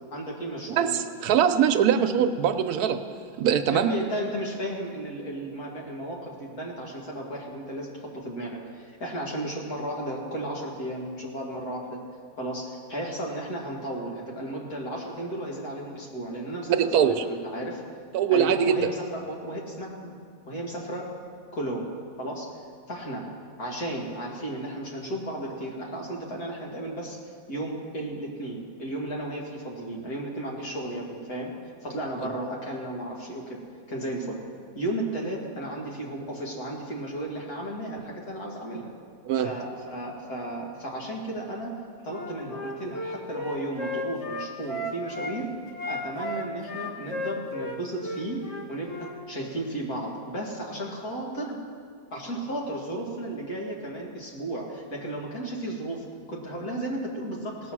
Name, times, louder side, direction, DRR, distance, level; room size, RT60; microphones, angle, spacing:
voice 1, 0.1-1.0 3.7-12.0 12.4-17.8 18.3-20.2 20.5-21.1 21.5-21.9 22.2-22.5 22.9-23.3 23.6-27.2 27.5-31.5 31.8-33.6 33.9-34.4 34.8-38.9 39.4-41.8 42.0-45.5 45.8-51.6 52.1-57.7, right 1 dB, 75° left, -2 dB, 2.6 m, -34 dB
voice 2, 0.7-3.0 3.4-3.9 16.7-17.2 18.1-18.9 39.3-39.5, right 8 dB, 85° right, 9 dB, 1.2 m, -22 dB
Wind instrument woodwind instrument, 42.1-45.4 45.7-49.1, left 1 dB, 50° left, 1.4 m, -34 dB
18.0 x 6.4 x 6.1 m, 2.2 s
omnidirectional pair, 1.6 m